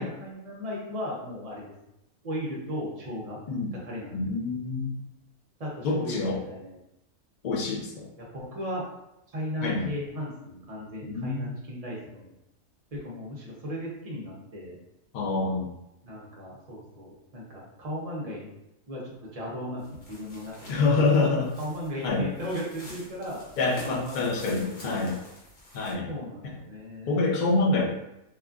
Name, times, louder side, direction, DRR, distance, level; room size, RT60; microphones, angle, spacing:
voice 1, 0.0-1.7 2.2-3.4 3.8-4.2 5.6-6.8 8.2-8.9 9.3-12.3 12.9-14.8 16.0-18.5 18.9-21.3 21.6-23.4 23.8-25.2 26.0-27.3, equal, 35° right, -4 dB, 0.6 m, -36 dB
voice 2, 4.1-5.0 5.8-6.4 7.4-8.1 9.6-9.9 11.0-11.5 15.1-15.7 20.7-21.5 22.0-22.3 23.6-25.2 25.7-26.1 26.4-26.5 27.1-27.9, left 3 dB, 80° left, -2 dB, 0.4 m, -26 dB
sound 1, 19.8-25.9, left 1 dB, 45° left, 0.7 m, -48 dB
3.1 x 2.4 x 2.4 m, 0.87 s
omnidirectional pair, 1.6 m